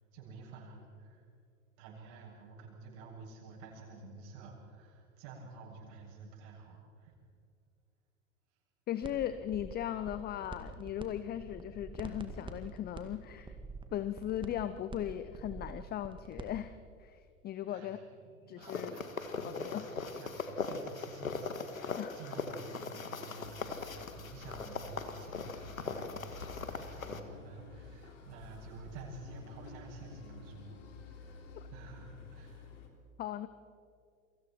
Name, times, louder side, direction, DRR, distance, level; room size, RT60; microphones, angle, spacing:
voice 1, 0.1-1.2 1.8-7.1 17.7-30.8 31.1-31.4 31.7-32.7, right 3 dB, 50° right, -3 dB, 7.6 m, -50 dB
voice 2, 8.9-13.6 13.9-18.0 18.5-19.0 19.4-19.9 22.0-22.2 31.5-31.7 33.2-33.5, left 11 dB, 25° left, 13 dB, 0.7 m, -38 dB
sound 1, 9.0-9.1 9.4-11.0 11.3-16.5, right 3 dB, 10° right, 2.0 m, -46 dB
sound 2, 18.6-27.2, left 4 dB, 80° left, 1.8 m, -40 dB
sound 3, 23.4-32.9, left 5 dB, 65° left, 3.2 m, -52 dB
29.0 x 23.5 x 4.5 m, 2.3 s
figure-of-eight pair, 85°, 40 cm